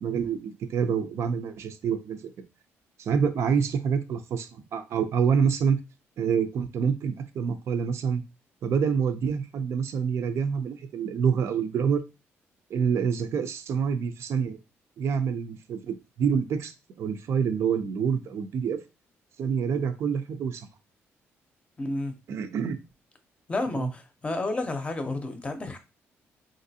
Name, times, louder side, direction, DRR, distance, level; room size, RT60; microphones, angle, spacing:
voice 1, 0.0-2.3 3.0-5.8 6.2-8.2 8.6-12.0 12.7-14.6 15.0-18.8 19.4-20.7 22.3-22.8 23.7-23.9, right 6 dB, 65° right, 0.5 m, -27 dB
voice 2, 21.8-22.1 23.5-25.8, left 2 dB, 25° left, 0.6 m, -31 dB
3.1 x 2.5 x 2.7 m
cardioid pair, 105°, 5 cm